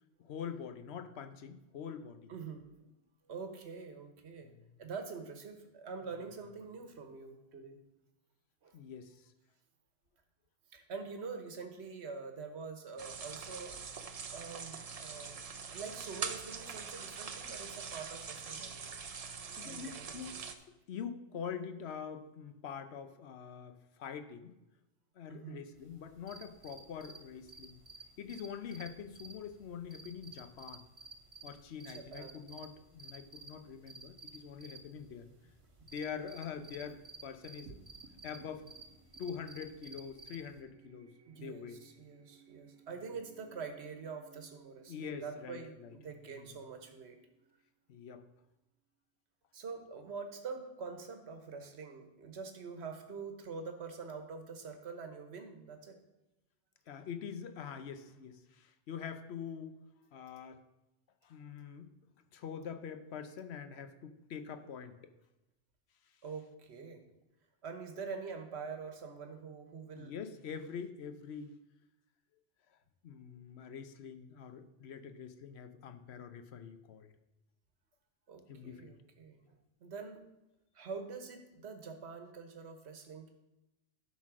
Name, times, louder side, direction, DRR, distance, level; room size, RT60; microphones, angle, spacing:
voice 1, 0.2-2.3 4.4-4.6 8.7-9.3 19.5-20.5 20.9-24.5 25.1-27.8 28.2-30.9 31.4-35.3 35.8-37.8 38.2-38.7 39.2-41.8 44.9-46.0 46.3-46.6 47.9-48.3 56.9-59.8 60.1-60.6 61.2-61.9 62.3-65.0 66.1-66.2 69.9-71.6 72.7-72.8 73.0-77.1 78.5-79.0, left 7 dB, 65° left, 9 dB, 0.9 m, -45 dB
voice 2, 2.3-2.6 3.3-4.5 4.8-7.8 8.6-8.8 10.7-13.7 14.3-18.9 19.6-20.2 25.3-25.6 31.9-32.4 35.8-35.9 41.3-47.2 49.5-56.0 66.2-67.0 67.6-70.1 78.3-79.5 79.8-80.2 80.7-83.3, right 5 dB, 60° right, 5 dB, 1.3 m, -45 dB
sound 1, 13.0-20.5, right 5 dB, 45° right, 0.5 m, -43 dB
sound 2, 25.8-40.6, right 3 dB, 25° right, 1.2 m, -54 dB
sound 3, 37.7-48.3, right 6 dB, 90° right, 1.3 m, -62 dB
11.5 x 4.1 x 6.0 m, 0.94 s
omnidirectional pair, 1.3 m